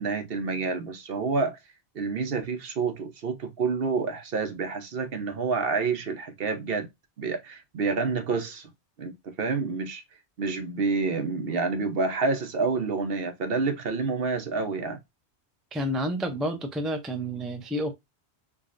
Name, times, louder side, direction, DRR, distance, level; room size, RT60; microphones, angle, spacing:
voice 1, 0.0-1.6 1.9-6.9 7.2-8.7 9.0-10.0 10.4-15.0, right 4 dB, 60° right, 1.0 m, -28 dB
voice 2, 15.7-17.9, equal, ahead, 0.4 m, -29 dB
4.7 x 2.5 x 2.5 m
omnidirectional pair, 1.1 m